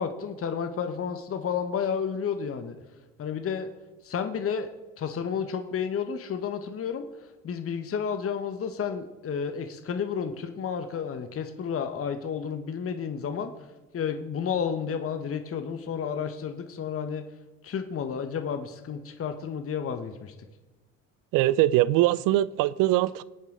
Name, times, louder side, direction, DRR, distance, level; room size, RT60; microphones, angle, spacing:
voice 1, 0.0-2.7 3.2-3.7 4.0-4.7 5.0-7.1 7.4-13.5 13.9-17.2 17.6-20.3, left 7 dB, 35° left, 1.2 m, -31 dB
voice 2, 21.3-23.2, right 15 dB, 55° right, 0.6 m, -22 dB
22.5 x 9.0 x 3.8 m
figure-of-eight pair, 55°, 41 cm